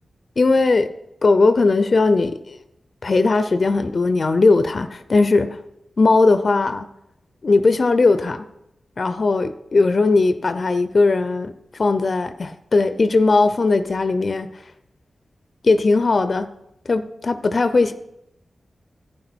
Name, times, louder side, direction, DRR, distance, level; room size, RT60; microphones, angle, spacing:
voice 1, 0.4-0.9 1.2-2.6 3.0-5.6 6.0-6.9 7.4-8.5 9.0-14.5 15.6-16.5 16.9-17.9, left 3 dB, 60° left, 0.6 m, -18 dB
10.5 x 8.9 x 4.4 m
cardioid pair, 50°, 0 cm